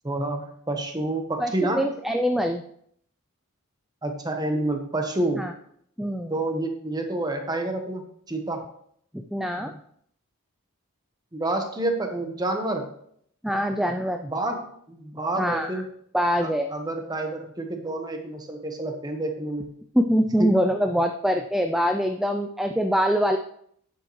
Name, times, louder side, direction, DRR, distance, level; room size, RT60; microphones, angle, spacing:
voice 1, 0.0-1.9 4.0-5.4 6.3-8.0 8.3-8.6 11.3-12.9 14.2-15.9 16.4-19.7 20.4-20.5, right 2 dB, 20° right, 4 dB, 1.1 m, -28 dB
voice 2, 1.4-2.6 5.4-5.5 6.0-6.4 9.1-9.8 13.4-14.3 15.4-15.8 16.1-16.7 19.9-23.4, equal, ahead, 5 dB, 0.3 m, -24 dB
9.9 x 7.6 x 3.2 m, 0.66 s
head